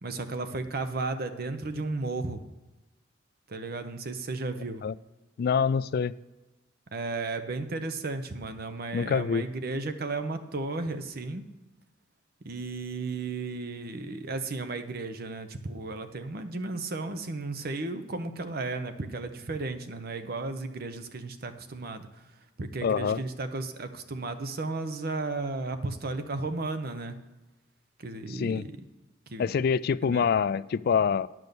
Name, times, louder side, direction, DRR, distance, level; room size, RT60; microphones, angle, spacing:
voice 1, 0.0-2.5 3.5-4.8 6.9-11.4 12.4-22.2 22.6-27.2 28.0-28.8 29.3-29.5 30.0-30.2, right 3 dB, 55° right, 9 dB, 0.8 m, -34 dB
voice 2, 5.4-6.1 8.9-9.4 22.8-23.2 28.4-28.6 29.4-31.3, left 6 dB, 55° left, 18 dB, 0.3 m, -25 dB
10.5 x 6.2 x 6.9 m, 1.1 s
head